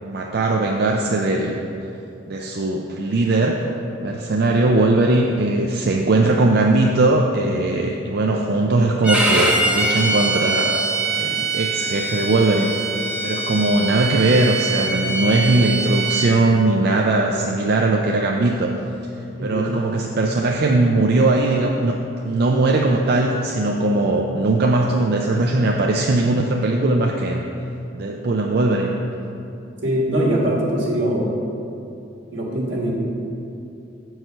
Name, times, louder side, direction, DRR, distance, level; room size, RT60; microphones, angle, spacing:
voice 1, 0.0-1.6 2.3-3.6 4.0-10.8 11.1-12.7 13.2-18.7 19.4-22.0 22.2-27.4 27.9-28.9, right 2 dB, 55° right, 1 dB, 0.4 m, -19 dB
Bowed string instrument, 9.0-16.3, right 2 dB, 5° right, 0.7 m, -23 dB
voice 2, 19.4-19.7 29.8-31.3 32.3-32.9, right 1 dB, 80° right, -4 dB, 1.7 m, -22 dB
7.6 x 4.7 x 5.6 m, 2.8 s
head